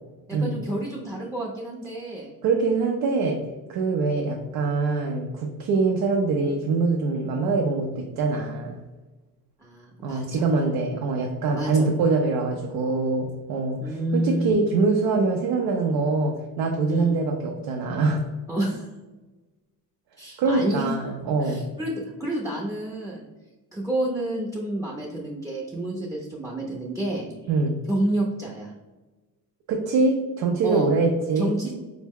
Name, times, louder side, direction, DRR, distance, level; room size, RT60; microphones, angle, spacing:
voice 1, 0.3-2.3 9.6-10.4 11.5-11.9 13.8-14.5 16.9-17.1 18.5-18.9 20.2-20.9 21.4-23.2 23.7-27.3 27.9-28.7 30.6-30.9 31.4-31.7, right 1 dB, 10° right, -2 dB, 0.5 m, -29 dB
voice 2, 2.4-3.4 3.7-8.8 10.0-18.3 20.4-21.7 27.5-27.8 29.7-31.6, right 3 dB, 85° right, 2 dB, 0.5 m, -24 dB
4.4 x 2.1 x 3.5 m, 1.2 s
cardioid pair, 110°, 36 cm